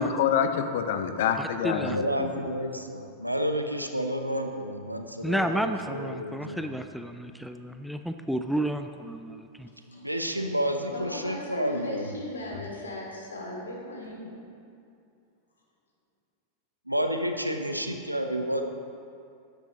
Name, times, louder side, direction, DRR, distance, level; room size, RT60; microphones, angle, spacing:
voice 1, 0.0-2.3, left 7 dB, 55° left, 9 dB, 0.8 m, -26 dB
voice 2, 1.4-2.0 5.2-9.7, right 1 dB, ahead, 7 dB, 0.4 m, -31 dB
voice 3, 1.9-6.7 9.9-12.1 16.9-18.6, equal, 85° right, 6 dB, 0.8 m, -30 dB
voice 4, 9.9-10.3 10.9-14.5, left 1 dB, 75° left, -2 dB, 2.5 m, -38 dB
13.5 x 10.5 x 3.1 m, 2.5 s
figure-of-eight pair, 90°, 0 cm